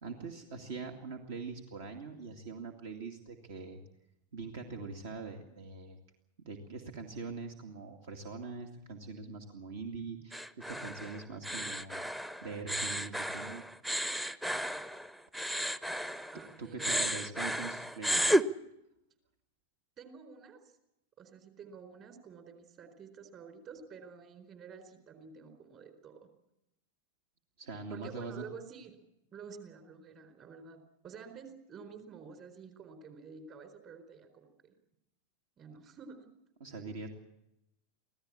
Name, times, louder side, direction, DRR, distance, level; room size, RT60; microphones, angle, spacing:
voice 1, 0.0-3.8 4.3-6.0 6.4-12.1 12.4-13.6 16.6-18.3 27.6-28.4 36.6-37.1, right 4 dB, 55° right, 4 dB, 2.3 m, -43 dB
sound 1, 10.3-16.5 16.8-18.4, equal, 5° right, 0.8 m, -33 dB
voice 2, 16.3-17.1 20.0-20.6 21.2-26.2 27.9-29.0 29.3-34.7 35.6-36.2, right 5 dB, 30° right, 8 dB, 4.3 m, -50 dB
25.5 x 16.5 x 8.7 m, 0.87 s
figure-of-eight pair, 90°, 0 cm